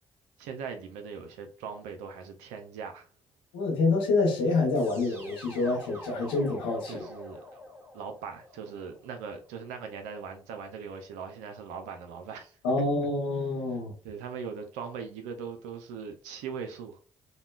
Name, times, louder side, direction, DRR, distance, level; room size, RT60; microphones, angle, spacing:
voice 1, 0.4-3.1 6.9-7.6 7.9-12.6 14.0-17.0, right 6 dB, 85° right, 0.4 m, -40 dB
voice 2, 3.5-7.0 12.6-13.9, left 3 dB, 90° left, 0.9 m, -27 dB
sound 1, 4.7-9.7, left 1 dB, 20° right, 1.4 m, -46 dB
3.6 x 2.1 x 2.3 m
hypercardioid pair, 55°, 12 cm